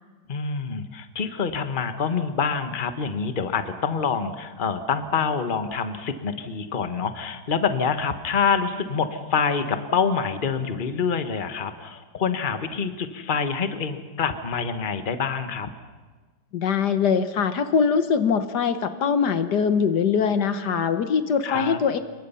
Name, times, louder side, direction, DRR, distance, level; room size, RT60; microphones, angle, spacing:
voice 1, 0.3-15.7 21.4-21.8, left 6 dB, 30° left, 9 dB, 1.3 m, -26 dB
voice 2, 16.5-22.0, left 6 dB, 75° left, 10 dB, 1.7 m, -22 dB
27.0 x 23.0 x 5.7 m, 1.3 s
omnidirectional pair, 1.8 m